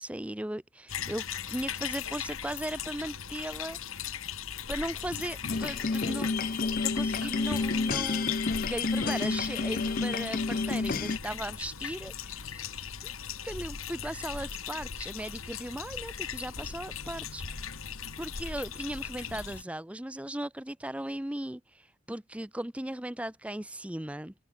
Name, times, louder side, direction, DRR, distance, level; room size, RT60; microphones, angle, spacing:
voice 1, 0.0-3.8 4.7-6.4 6.8-8.3 8.7-13.1 13.4-17.8 18.2-24.3, right 1 dB, 5° right, 0.5 m, -37 dB
sound 1, 0.9-19.6, left 8 dB, 90° left, 2.3 m, -38 dB
sound 2, 4.5-10.4, left 1 dB, 20° left, 4.6 m, -61 dB
sound 3, 5.5-11.2, left 4 dB, 45° left, 0.5 m, -30 dB
head